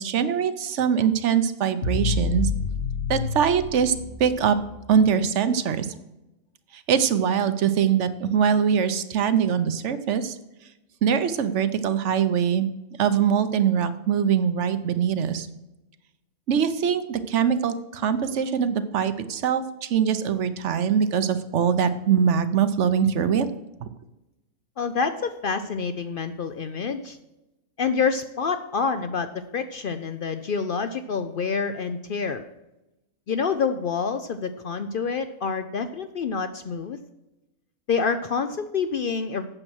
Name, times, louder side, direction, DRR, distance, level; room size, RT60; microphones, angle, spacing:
voice 1, 0.0-2.5 3.1-3.9 4.2-4.6 4.9-5.9 6.7-10.4 11.0-12.7 13.0-15.5 16.5-23.5 23.8-23.9, right 7 dB, 60° right, 11 dB, 1.0 m, -22 dB
sound 1, 1.8-4.9, left 4 dB, 50° left, 1.3 m, -28 dB
voice 2, 24.8-27.2 27.8-32.4 33.3-37.0 37.9-39.5, left 5 dB, 70° left, 10 dB, 0.5 m, -27 dB
8.9 x 7.5 x 6.2 m, 0.97 s
omnidirectional pair, 1.5 m